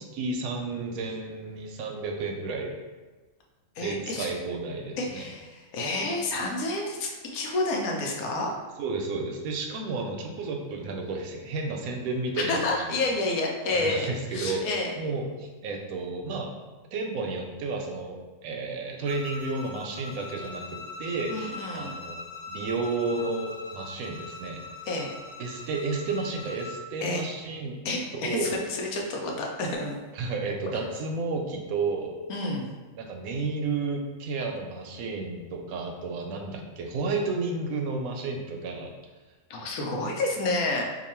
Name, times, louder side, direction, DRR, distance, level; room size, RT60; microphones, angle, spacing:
voice 1, 0.0-2.7 3.8-5.3 8.8-13.2 13.7-14.6 15.0-16.5 16.9-24.6 25.4-27.8 28.1-28.6 30.1-32.1 33.0-38.9, right 3 dB, 80° right, 2 dB, 1.0 m, -32 dB
voice 2, 3.8-4.3 5.0-8.5 12.5-14.9 21.3-21.9 24.9-25.1 27.0-27.2 27.8-30.0 32.3-32.7 39.5-40.8, left 2 dB, 85° left, 0 dB, 1.1 m, -29 dB
Bowed string instrument, 19.0-26.8, left 3 dB, 55° left, 1.0 m, -41 dB
2.9 x 2.3 x 4.3 m, 1.3 s
omnidirectional pair, 1.5 m